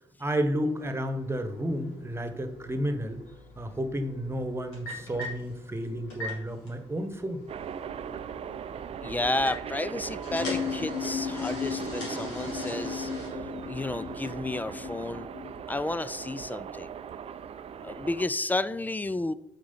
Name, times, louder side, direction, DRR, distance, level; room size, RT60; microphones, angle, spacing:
voice 1, 0.2-3.2 3.6-7.4, equal, 15° right, 8 dB, 1.4 m, -31 dB
sound 1, 0.6-14.3, left 1 dB, 75° left, 2.7 m, -44 dB
sound 2, 7.5-18.3, right 8 dB, 40° right, 0.6 m, -39 dB
voice 2, 9.0-13.1 13.7-15.3 15.7-17.0 17.8-19.3, left 2 dB, 10° left, 16 dB, 0.5 m, -31 dB
sound 3, 10.3-15.6, left 8 dB, 35° left, 0.9 m, -36 dB
8.6 x 4.8 x 5.7 m, 0.84 s
figure-of-eight pair, 45°, 15 cm